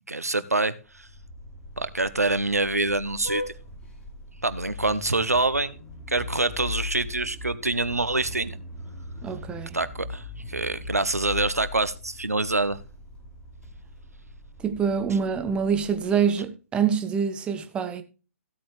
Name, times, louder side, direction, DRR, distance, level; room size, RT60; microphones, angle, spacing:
voice 1, 0.1-1.1 1.8-3.4 4.4-5.7 6.1-8.6 9.7-12.8, right 2 dB, 80° right, 1.1 m, -26 dB
Vehicle horn car horn honking, 0.9-16.3, left 2 dB, 15° left, 6.6 m, -39 dB
voice 2, 9.2-9.7 14.6-18.0, right 7 dB, 10° right, 1.1 m, -25 dB
15.5 x 8.6 x 3.2 m
figure-of-eight pair, 125°, 8 cm